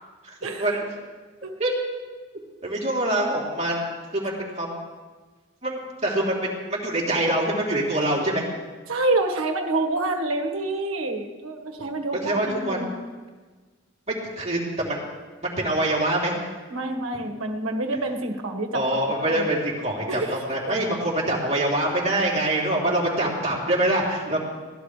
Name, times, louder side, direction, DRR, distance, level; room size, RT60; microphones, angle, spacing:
voice 1, 0.2-0.8 1.6-1.7 2.6-4.3 4.6-4.8 5.6-8.4 12.2-12.8 14.4-15.0 15.4-16.4 18.7-24.4, right 1 dB, 35° right, -4 dB, 3.4 m, -25 dB
voice 2, 8.9-12.9 16.7-18.9 19.2-19.5 20.1-20.4 20.6-20.8, right 2 dB, 85° right, 3 dB, 1.6 m, -27 dB
23.0 x 17.0 x 3.4 m, 1.4 s
head